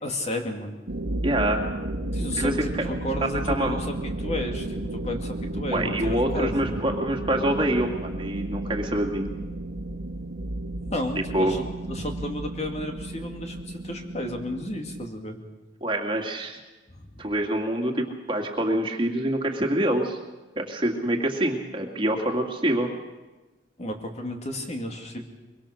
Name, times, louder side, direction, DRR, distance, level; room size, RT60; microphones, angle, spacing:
voice 1, 0.0-0.8 2.1-6.8 10.8-15.4 16.9-17.3 23.8-25.3, left 1 dB, 35° left, 3 dB, 2.5 m, -33 dB
sound 1, 0.9-15.1, right 1 dB, 85° right, 1.9 m, -33 dB
voice 2, 1.2-1.7 2.4-2.5 3.2-3.8 5.7-9.3 11.3-11.5 15.8-16.6 17.2-20.2 20.6-22.9, right 1 dB, 30° right, 2 dB, 2.3 m, -26 dB
23.5 x 23.5 x 6.5 m, 1.2 s
head